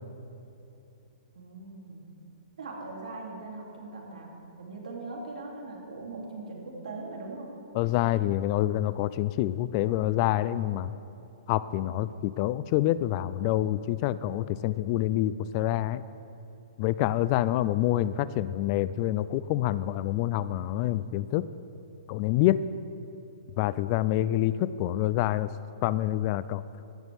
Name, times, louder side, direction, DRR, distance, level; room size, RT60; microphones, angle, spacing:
voice 1, 1.3-2.1 2.6-4.3 4.6-7.5, right 3 dB, 70° right, -2 dB, 2.9 m, -40 dB
voice 2, 7.8-10.9 11.5-16.0 16.8-21.5 22.1-22.6 23.6-25.5 25.8-26.6, left 14 dB, 40° left, 17 dB, 0.3 m, -27 dB
15.0 x 11.0 x 3.5 m, 2.8 s
hypercardioid pair, 120°, 4 cm